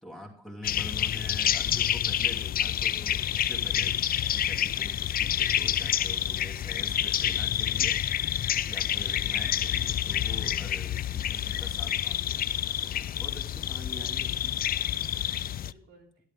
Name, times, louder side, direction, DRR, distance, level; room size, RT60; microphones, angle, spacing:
voice 1, 0.0-4.0 4.3-8.0 8.3-14.5, left 1 dB, ahead, -3 dB, 2.7 m, -45 dB
sound 1, 0.6-15.7, left 11 dB, 50° left, 0.4 m, -28 dB
voice 2, 6.9-7.3 9.0-9.2 10.5-10.8 13.1-13.6 14.5-15.1 15.7-16.1, right 2 dB, 70° right, -2 dB, 3.6 m, -58 dB
13.0 x 11.5 x 3.6 m, 0.71 s
cardioid pair, 90°, 20 cm